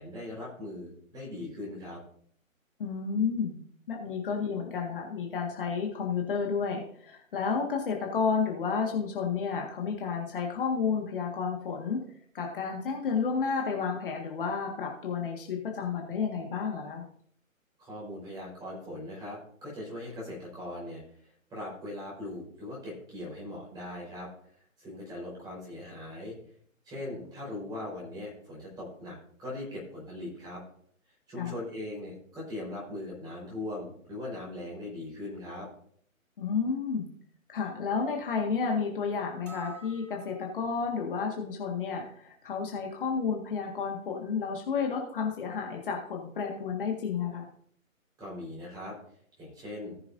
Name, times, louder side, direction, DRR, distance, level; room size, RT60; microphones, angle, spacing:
voice 1, 0.0-2.0 17.8-24.5 24.8-26.3 26.8-30.6 31.3-35.7 48.2-48.9 49.4-49.9, left 1 dB, 10° right, -5 dB, 4.5 m, -40 dB
voice 2, 2.8-3.6 3.9-12.0 12.3-17.0 31.4-31.5 36.4-37.1 37.5-47.5, left 5 dB, 40° left, 0 dB, 1.8 m, -31 dB
sound 1, 39.5-40.8, right 2 dB, 75° right, 3.4 m, -50 dB
18.5 x 6.9 x 2.7 m, 0.62 s
hypercardioid pair, 155°, 42 cm